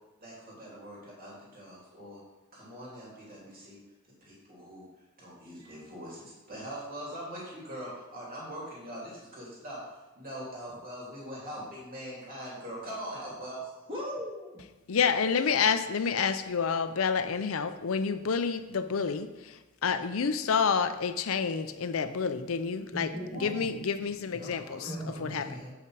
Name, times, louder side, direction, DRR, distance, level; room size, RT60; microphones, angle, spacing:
voice 1, 0.2-2.2 2.5-3.8 4.2-4.8 5.2-9.8 10.1-13.7 24.3-25.7, right 1 dB, 45° right, -5 dB, 2.9 m, -42 dB
voice 2, 13.9-14.6 22.9-23.7 24.4-24.5 24.9-25.6, equal, 25° right, -4 dB, 2.0 m, -38 dB
voice 3, 14.9-19.6 19.8-23.1 23.4-24.9 25.2-25.5, left 6 dB, 75° left, 10 dB, 0.6 m, -28 dB
8.4 x 5.8 x 4.7 m, 1.1 s
head